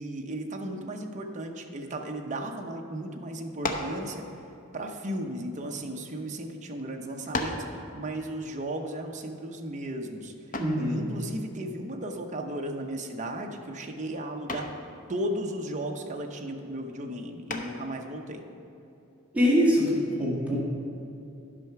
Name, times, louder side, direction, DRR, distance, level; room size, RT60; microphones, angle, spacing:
voice 1, 0.0-4.2 4.7-10.3 10.8-14.7 15.1-18.4, right 1 dB, 35° right, 2 dB, 0.8 m, -35 dB
sound 1, 3.6-4.0 4.9-6.1 6.8-6.9 7.3-7.7 10.5-10.9 12.8-13.2 13.5-13.9 14.5-14.8 17.5-17.9, left 2 dB, 40° left, 0.8 m, -34 dB
voice 2, 10.6-11.0 19.3-20.6, equal, 5° right, -7 dB, 1.7 m, -23 dB
11.0 x 5.6 x 5.8 m, 2.7 s
head